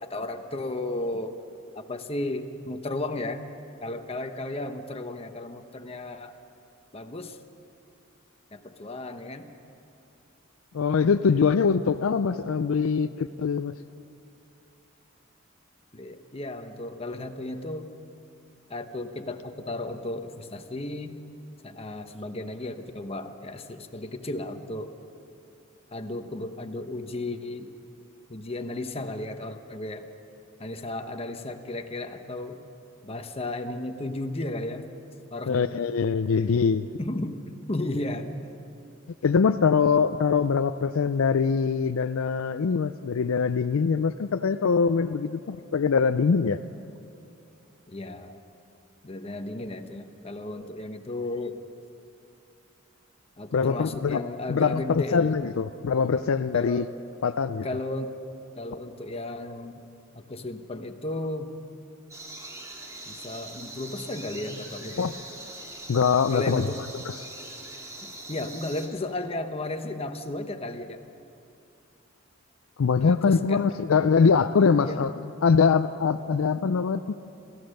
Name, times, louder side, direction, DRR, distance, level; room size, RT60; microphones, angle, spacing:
voice 1, 0.0-1.4 1.7-3.4 3.8-6.3 6.9-7.4 8.5-9.5 15.9-17.9 18.7-21.2 21.6-24.9 25.9-27.7 28.3-30.1 30.6-32.6 33.0-34.9 35.3-35.8 37.0-37.4 37.7-38.3 47.9-48.4 49.0-51.6 53.4-55.3 56.5-56.9 57.6-58.2 58.5-59.9 60.1-61.5 63.1-65.1 66.3-66.8 68.0-71.0 73.0-73.6 74.6-75.0, left 2 dB, 30° left, 6 dB, 1.0 m, -34 dB
voice 2, 10.7-13.7 35.5-36.9 39.2-46.6 53.5-54.2 54.5-56.9 57.2-57.7 65.0-65.1 65.9-66.7 67.1-67.2 72.8-75.1 75.4-77.0, left 5 dB, 80° left, 9 dB, 0.4 m, -23 dB
sound 1, 62.1-68.9, right 1 dB, 15° right, 2.2 m, -42 dB
27.0 x 14.5 x 6.6 m, 2.6 s
head